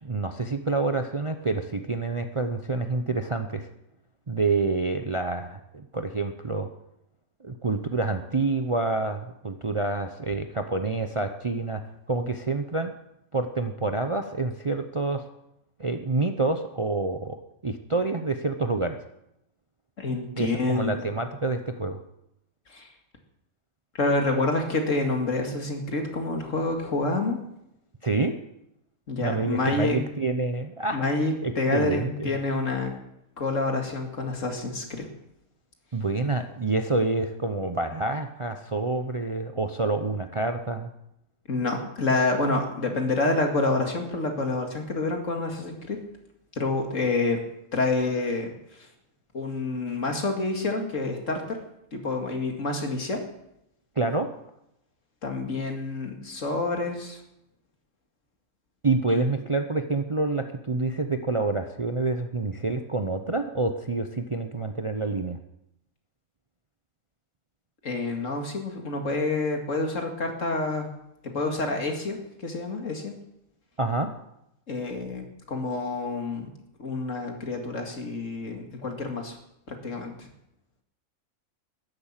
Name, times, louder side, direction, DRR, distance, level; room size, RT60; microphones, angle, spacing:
voice 1, 0.0-3.7 4.3-6.7 7.4-11.8 12.1-12.9 13.3-15.2 15.8-19.0 20.4-22.0 28.0-28.3 29.2-31.0 31.4-32.3 35.9-40.9 54.0-54.3 58.8-65.4 73.8-74.1, right 3 dB, 30° right, 7 dB, 0.7 m, -27 dB
voice 2, 20.0-21.1 22.7-22.9 24.0-27.4 29.1-30.0 30.9-32.9 33.4-35.1 41.5-46.0 46.5-47.4 47.7-48.9 49.3-51.6 51.9-53.2 55.2-57.2 59.1-59.2 67.8-70.9 71.3-73.1 74.7-76.5 76.8-79.4 79.7-80.3, left 3 dB, 65° left, 3 dB, 2.5 m, -28 dB
13.0 x 11.0 x 7.4 m, 0.82 s
omnidirectional pair, 1.4 m